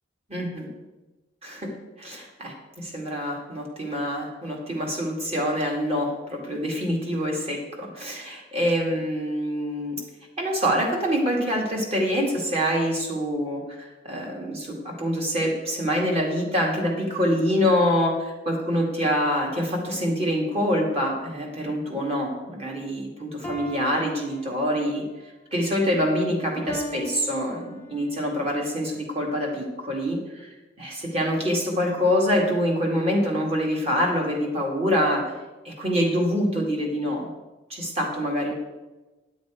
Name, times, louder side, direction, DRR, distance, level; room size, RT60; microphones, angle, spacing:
voice 1, 0.3-0.7 1.4-1.7 2.0-10.0 10.4-25.0 25.5-30.5 30.8-35.3 35.6-37.3 37.7-38.5, equal, 35° right, -1 dB, 2.1 m, -25 dB
sound 1, 23.4-25.0 26.7-28.2, equal, 10° left, 0.9 m, -38 dB
10.0 x 7.1 x 5.0 m, 1.1 s
head